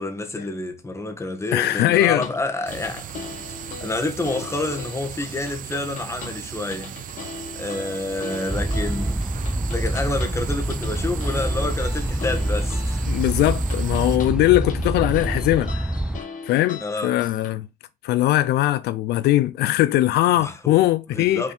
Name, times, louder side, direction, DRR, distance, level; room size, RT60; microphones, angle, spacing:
voice 1, 0.0-3.1 3.8-7.0 7.5-9.3 9.7-13.0 16.8-17.2 20.3-20.8 21.1-21.5, left 2 dB, 15° left, 1.6 m, -28 dB
voice 2, 1.5-2.2 13.1-15.9 16.4-17.7 18.0-21.5, left 15 dB, 75° left, 0.4 m, -20 dB
sound 1, 2.2-17.5, left 5 dB, 50° left, 1.6 m, -40 dB
sound 2, 2.7-14.2, right 10 dB, 50° right, 0.6 m, -37 dB
sound 3, 8.5-16.2, right 1 dB, 5° right, 0.4 m, -26 dB
6.1 x 4.3 x 4.2 m
cardioid pair, 110°, 17 cm